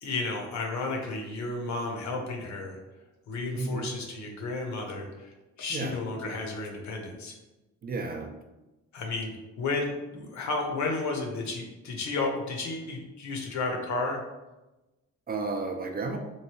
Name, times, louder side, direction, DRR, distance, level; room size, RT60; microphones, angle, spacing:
voice 1, 0.0-2.8 3.3-5.3 5.6-7.3 8.9-14.2, left 3 dB, 65° left, 2 dB, 0.8 m, -32 dB
voice 2, 3.6-3.9 5.7-6.0 7.8-8.3 15.3-16.2, right 3 dB, 30° right, 4 dB, 0.4 m, -32 dB
3.1 x 2.6 x 2.9 m, 1.0 s
cardioid pair, 90°, 30 cm